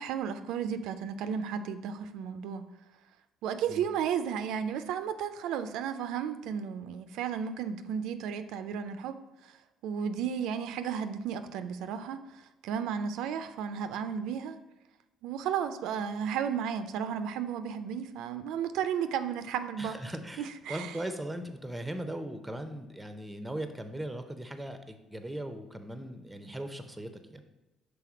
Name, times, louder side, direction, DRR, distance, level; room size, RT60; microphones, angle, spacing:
voice 1, 0.0-2.7 3.4-9.5 9.8-14.6 15.2-20.0 20.4-20.9, right 8 dB, 85° right, 10 dB, 0.3 m, -33 dB
voice 2, 19.8-27.4, right 1 dB, 5° right, 8 dB, 0.5 m, -39 dB
5.9 x 3.5 x 4.9 m, 1.0 s
cardioid pair, 115°, 0 cm